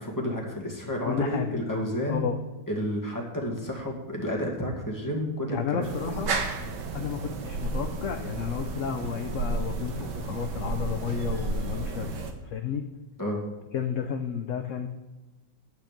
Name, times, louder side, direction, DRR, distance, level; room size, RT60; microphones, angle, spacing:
voice 1, 0.0-2.3 2.7-6.4 13.2-13.4, equal, 10° left, -1 dB, 2.1 m, -31 dB
voice 2, 1.0-1.6 2.1-2.4 5.5-6.4 6.9-12.1 12.4-12.8 13.7-14.9, left 7 dB, 55° left, 6 dB, 0.9 m, -32 dB
sound 1, 5.8-12.3, right 3 dB, 75° right, 1.8 m, -32 dB
10.5 x 8.8 x 5.1 m, 1.2 s
omnidirectional pair, 1.9 m